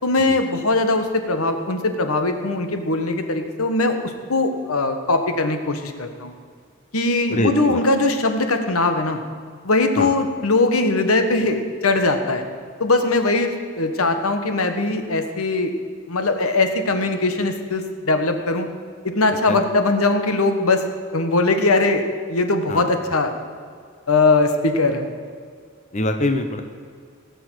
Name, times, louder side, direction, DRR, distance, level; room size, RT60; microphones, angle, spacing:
voice 1, 0.0-6.3 6.9-9.2 9.6-12.4 12.8-15.7 16.1-18.7 19.0-20.8 21.1-22.0 22.3-23.3 24.1-25.1, left 2 dB, 85° left, 7 dB, 1.4 m, -20 dB
voice 2, 7.3-7.8 10.0-10.1 19.5-19.6 22.7-22.8 25.9-26.6, left 2 dB, 35° left, 6 dB, 0.8 m, -23 dB
18.0 x 7.0 x 8.0 m, 2.1 s
head